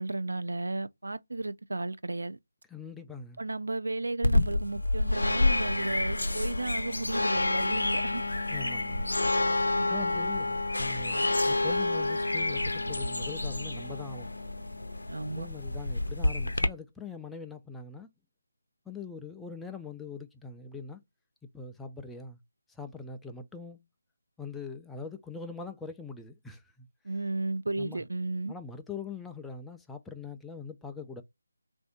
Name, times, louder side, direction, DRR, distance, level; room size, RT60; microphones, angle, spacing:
voice 1, 0.0-2.4 3.4-8.2 8.5-8.6 9.7-9.9 15.1-15.5 27.0-28.5, right 2 dB, 70° right, 0.4 m, -34 dB
voice 2, 2.7-3.4 8.5-9.1 9.9-14.3 15.2-18.1 18.9-21.0 21.5-22.4 22.8-23.8 24.4-26.9 27.8-28.0 28.5-31.2, left 5 dB, 5° left, 0.4 m, -42 dB
sound 1, 4.2-16.7, left 2 dB, 80° left, 0.6 m, -28 dB
3.4 x 2.6 x 3.5 m
figure-of-eight pair, 155°, 0 cm